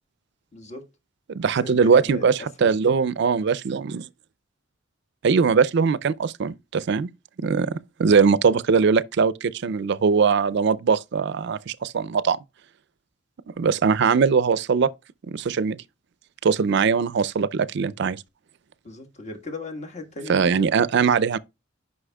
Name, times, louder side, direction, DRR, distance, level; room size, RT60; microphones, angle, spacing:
voice 1, 0.5-0.8 1.4-2.2 2.6-2.8 18.8-20.7, left 2 dB, 35° left, 1.5 m, -37 dB
voice 2, 1.3-4.1 5.2-7.1 7.4-12.4 13.6-14.9 15.3-15.8 16.4-18.2 20.3-21.4, right 5 dB, 60° right, 0.4 m, -21 dB
9.9 x 5.5 x 2.2 m
head